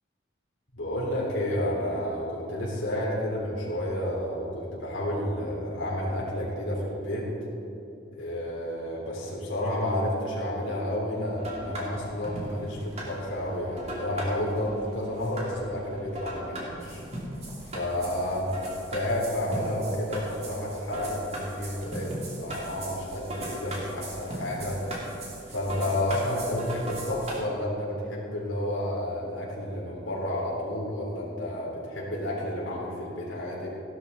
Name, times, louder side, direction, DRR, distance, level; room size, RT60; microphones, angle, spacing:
voice 1, 0.7-7.3 8.2-17.0 17.6-18.4 18.9-24.9 25.5-33.7, left 1 dB, 90° left, -5 dB, 3.6 m, -31 dB
sound 1, 11.4-27.4, right 1 dB, 35° right, 2.5 m, -39 dB
16.5 x 12.0 x 4.1 m, 2.9 s
head